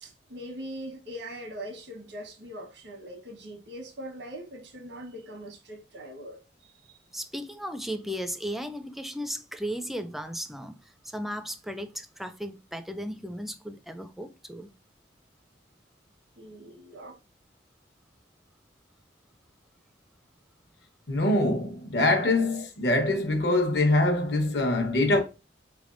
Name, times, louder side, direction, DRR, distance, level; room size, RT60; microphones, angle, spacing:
voice 1, 0.0-7.0 16.4-17.2 22.4-22.6, equal, 90° right, 1.2 m, -42 dB
voice 2, 7.1-14.7, equal, ahead, 0.3 m, -36 dB
voice 3, 21.1-25.2, left 2 dB, 70° left, 1.0 m, -24 dB
3.9 x 3.3 x 2.5 m
head